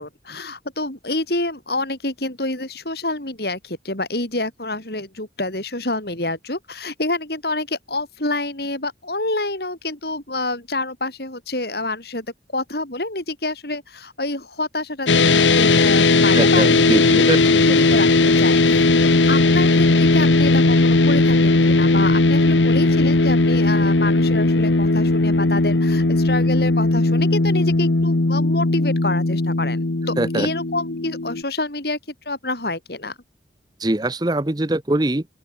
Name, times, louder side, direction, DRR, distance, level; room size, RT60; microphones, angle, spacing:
voice 1, 0.0-12.3 12.5-17.0 17.5-18.9 19.3-29.8 30.1-32.0 32.2-33.1, left 2 dB, 60° left, 4.8 m, -27 dB
sound 1, 15.1-31.4, left 2 dB, 85° left, 1.2 m, -17 dB
voice 2, 16.3-18.0 30.2-30.5 33.8-35.3, right 1 dB, 20° right, 0.8 m, -23 dB
open air
head